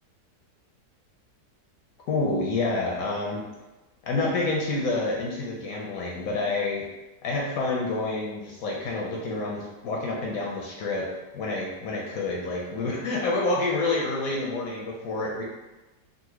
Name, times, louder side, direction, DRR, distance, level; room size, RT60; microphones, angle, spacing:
voice 1, 2.1-3.4 4.0-6.9 7.2-11.1 11.3-15.4, left 2 dB, 70° left, -2 dB, 0.9 m, -28 dB
3.9 x 2.0 x 2.9 m, 1.1 s
omnidirectional pair, 1.8 m